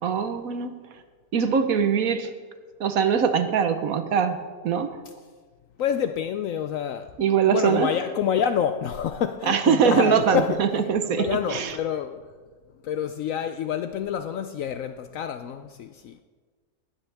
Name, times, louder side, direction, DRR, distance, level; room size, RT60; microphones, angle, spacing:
voice 1, 0.0-0.7 1.3-2.3 2.8-4.4 4.6-5.0 7.2-7.9 9.5-11.7, right 7 dB, 70° right, 1.3 m, -22 dB
voice 2, 5.8-7.1 7.5-12.2 12.8-16.2, left 8 dB, 70° left, 0.9 m, -28 dB
19.0 x 13.5 x 3.4 m
omnidirectional pair, 1.6 m